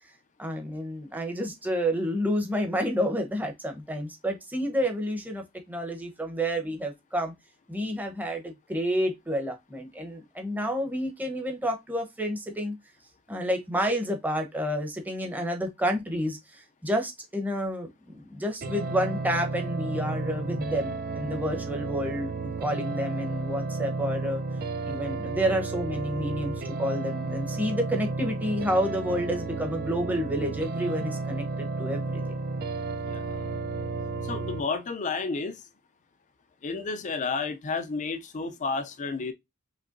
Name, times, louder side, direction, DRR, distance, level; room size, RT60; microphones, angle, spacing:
voice 1, 0.4-7.3 7.7-12.7 13.3-24.4 24.9-32.1, equal, 10° right, 0.9 m, -29 dB
sound 1, 18.6-34.6, right 3 dB, 45° right, 0.4 m, -32 dB
voice 2, 33.0-33.5 34.2-35.6 36.6-39.3, left 4 dB, 35° left, 0.4 m, -31 dB
5.2 x 3.3 x 2.6 m
head